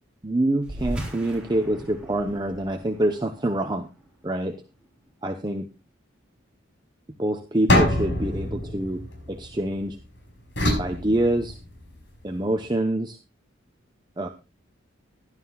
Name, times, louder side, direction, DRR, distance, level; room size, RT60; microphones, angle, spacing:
voice 1, 0.2-3.9 4.2-4.6 5.2-5.7 7.2-9.0 9.3-10.0 10.8-11.5 12.2-13.2 14.2-14.3, right 1 dB, 20° right, 6 dB, 0.8 m, -26 dB
sound 1, 0.6-5.5, right 1 dB, 5° right, 3.5 m, -39 dB
sound 2, 7.7-9.9 10.6-11.9, left 1 dB, 65° left, 5.3 m, -25 dB
16.5 x 11.5 x 2.3 m, 0.28 s
head